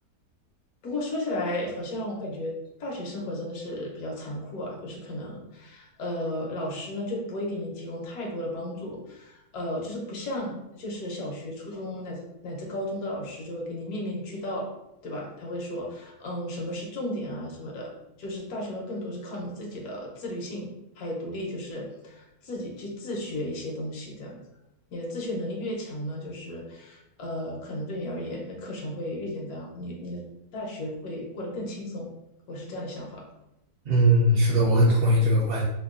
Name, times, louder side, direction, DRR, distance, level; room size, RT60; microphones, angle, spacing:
voice 1, 0.8-2.5 2.8-14.7 15.0-17.9 18.2-20.7 21.0-24.4 24.9-30.2 30.5-32.1 32.5-33.2, left 1 dB, 70° left, -2 dB, 1.2 m, -34 dB
voice 2, 33.8-35.6, right 1 dB, 55° right, -6 dB, 0.7 m, -20 dB
4.4 x 2.3 x 2.4 m, 0.90 s
omnidirectional pair, 1.6 m